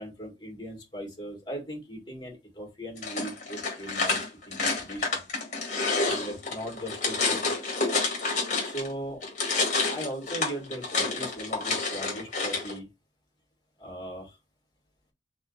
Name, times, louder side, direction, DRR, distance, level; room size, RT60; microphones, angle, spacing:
voice 1, 0.0-4.2 4.5-5.2 6.0-7.5 8.6-9.2 9.9-12.9 13.8-14.4, right 1 dB, 25° left, 0 dB, 2.0 m, -38 dB
sound 1, 3.0-8.9 9.2-12.7, left 3 dB, 45° left, 1.6 m, -29 dB
5.2 x 2.0 x 4.0 m, 0.24 s
head